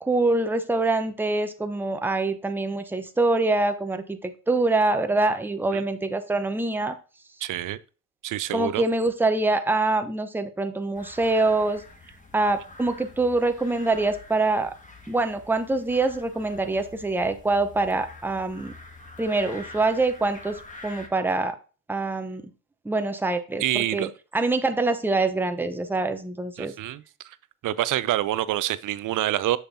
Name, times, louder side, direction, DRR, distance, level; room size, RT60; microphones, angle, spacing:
voice 1, 0.0-7.0 8.5-11.8 12.3-14.7 15.1-18.7 19.2-21.6 21.9-22.4 22.8-26.7, right 2 dB, 5° right, 0.8 m, -25 dB
voice 2, 7.4-7.8 8.2-8.8 23.6-24.1 26.6-27.0 27.6-29.6, right 13 dB, 45° right, 0.6 m, -26 dB
sound 1, 10.9-21.1, left 2 dB, 15° left, 1.6 m, -46 dB
6.7 x 5.8 x 2.7 m
hypercardioid pair, 50°, 43 cm